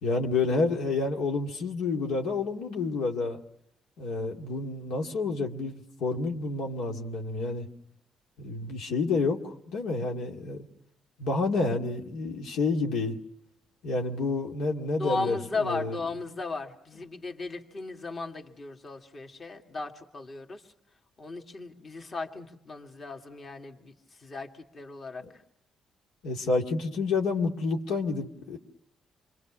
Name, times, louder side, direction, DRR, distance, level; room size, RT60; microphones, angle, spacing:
voice 1, 0.0-3.4 4.0-7.7 8.4-10.7 11.2-13.2 13.8-16.0 26.2-28.6, left 3 dB, 90° left, 2.1 m, -29 dB
voice 2, 15.0-20.6 21.2-23.9 24.2-25.2, left 3 dB, 40° left, 2.2 m, -36 dB
28.0 x 23.0 x 6.2 m
cardioid pair, 105°, 0 cm